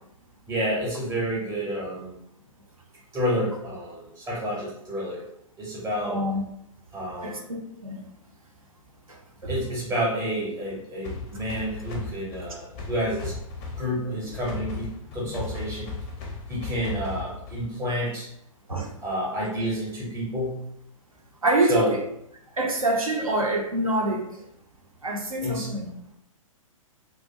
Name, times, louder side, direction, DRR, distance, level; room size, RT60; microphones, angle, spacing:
voice 1, 0.5-2.1 3.1-5.3 5.6-6.2 6.9-7.5 9.5-13.3 13.8-15.9 16.5-18.3 19.0-20.6 21.7-22.0 25.4-25.7, equal, 15° right, -6 dB, 0.7 m, -29 dB
voice 2, 6.0-6.4 7.2-8.0 9.4-9.5 18.7-18.9 21.4-21.9 22.6-24.2 25.0-25.9, right 2 dB, 80° right, 1 dB, 0.6 m, -25 dB
sound 1, 11.0-17.8, left 3 dB, 30° left, 0.4 m, -36 dB
2.4 x 2.0 x 2.7 m, 0.75 s
figure-of-eight pair, 115°, 18 cm